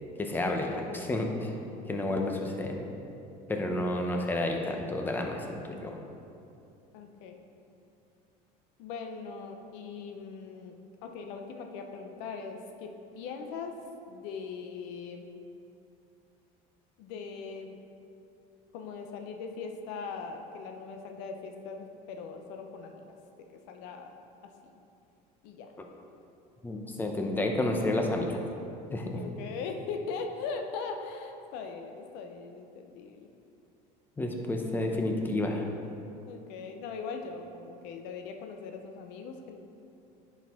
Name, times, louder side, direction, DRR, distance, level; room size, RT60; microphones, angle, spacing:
voice 1, 0.2-1.5 1.9-2.9 3.5-6.0 26.6-28.4 28.9-29.2 34.2-35.7, left 1 dB, 10° left, 2 dB, 0.7 m, -30 dB
voice 2, 1.7-2.1 3.8-3.9 6.9-7.5 8.8-10.7 11.0-12.9 13.1-13.7 14.1-15.3 17.0-17.8 18.7-23.0 23.5-24.1 24.4-24.7 25.4-25.7 29.1-33.3 36.3-39.6, left 5 dB, 75° left, 4 dB, 0.7 m, -40 dB
10.0 x 4.6 x 3.6 m, 2.7 s
cardioid pair, 145°, 18 cm